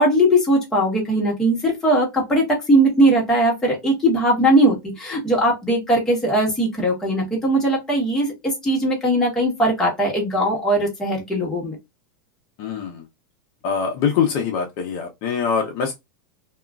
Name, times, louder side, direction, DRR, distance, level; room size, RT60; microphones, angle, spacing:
voice 1, 0.0-11.8, right 1 dB, 5° left, 1.0 m, -19 dB
voice 2, 12.6-13.0 13.6-15.9, left 6 dB, 40° left, 0.6 m, -23 dB
2.8 x 2.3 x 2.2 m
supercardioid pair, 165°, 11 cm